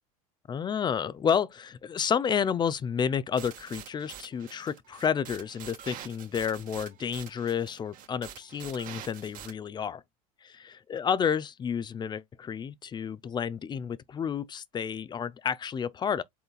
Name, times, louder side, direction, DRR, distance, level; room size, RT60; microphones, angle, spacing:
voice 1, 0.5-10.0 10.4-16.2, left 7 dB, 25° left, 0.4 m, -30 dB
sound 1, 3.4-9.5, right 10 dB, 45° right, 1.4 m, -46 dB
5.6 x 3.9 x 2.3 m
hypercardioid pair, 95°, 19 cm